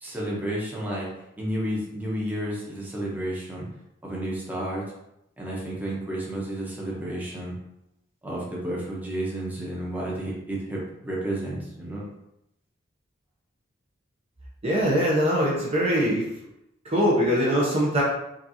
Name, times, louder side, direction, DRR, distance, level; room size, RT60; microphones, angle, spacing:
voice 1, 0.0-1.1 1.4-3.7 4.0-4.8 5.4-7.5 8.2-12.0, right 1 dB, 10° right, -5 dB, 1.0 m, -31 dB
voice 2, 14.6-16.2 16.8-18.0, equal, 35° right, -4 dB, 0.8 m, -22 dB
5.0 x 2.6 x 2.8 m, 0.83 s
head